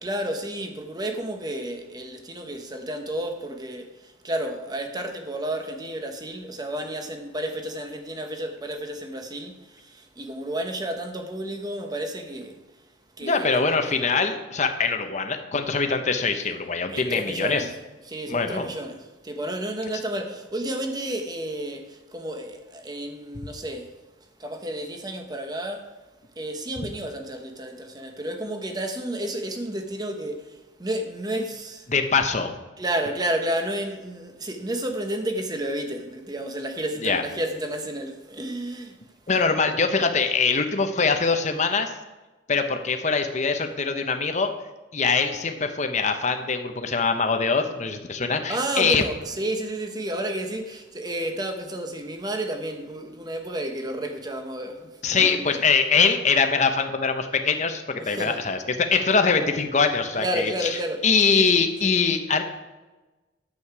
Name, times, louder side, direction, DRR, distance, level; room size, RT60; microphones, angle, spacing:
voice 1, 0.0-12.6 13.2-14.0 16.9-17.8 18.1-23.9 24.4-25.9 26.4-31.9 32.8-39.0 48.5-55.6 58.0-58.4 60.2-61.0 61.3-61.9, right 1 dB, 20° right, 1.0 m, -31 dB
voice 2, 13.2-17.6 18.3-18.7 31.9-32.5 37.0-37.2 39.3-41.9 42.5-44.5 44.9-49.0 55.0-62.4, left 5 dB, 35° left, 0.8 m, -23 dB
10.0 x 7.9 x 4.8 m
head